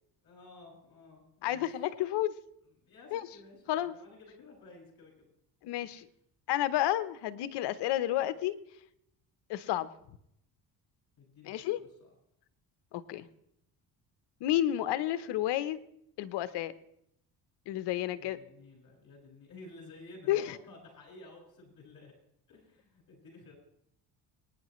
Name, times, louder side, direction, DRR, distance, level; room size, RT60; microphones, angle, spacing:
voice 1, 0.2-1.8 2.8-5.3 11.2-12.1 18.2-22.1 22.5-23.5, left 2 dB, 55° left, 0 dB, 6.4 m, -53 dB
voice 2, 1.4-2.3 3.1-3.3 3.7-3.9 5.6-6.1 6.5-8.6 9.5-9.9 11.4-11.8 12.9-13.3 14.4-15.8 16.2-16.7 17.7-18.4 20.3-20.6, left 13 dB, 75° left, 14 dB, 1.0 m, -31 dB
25.0 x 10.0 x 3.1 m, 0.75 s
cardioid pair, 90°, 41 cm